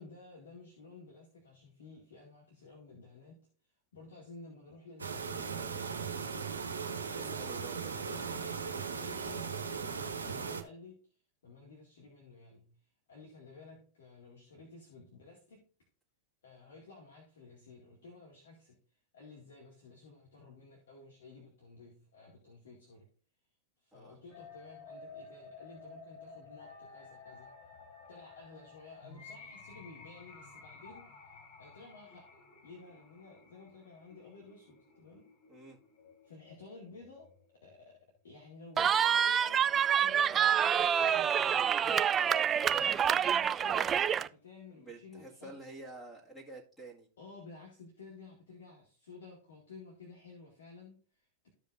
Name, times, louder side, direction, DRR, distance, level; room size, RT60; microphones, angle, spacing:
voice 1, 0.0-6.3 6.8-7.6 7.9-15.6 16.4-23.1 23.8-27.5 28.1-31.1 31.6-32.3 32.6-35.3 36.2-45.5 47.2-51.5, left 3 dB, 75° left, -1 dB, 2.2 m, -54 dB
sound 1, 5.0-10.6, right 6 dB, 85° right, 1.0 m, -38 dB
voice 2, 7.1-7.9 23.9-24.2 35.5-35.8 44.7-47.1, right 2 dB, 5° left, -4 dB, 2.2 m, -49 dB
sound 2, 24.3-38.3, left 4 dB, 55° left, 3.8 m, -54 dB
Cheering, 38.8-44.3, right 8 dB, 25° right, 0.3 m, -27 dB
14.0 x 5.1 x 2.6 m, 0.41 s
figure-of-eight pair, 90°, 0 cm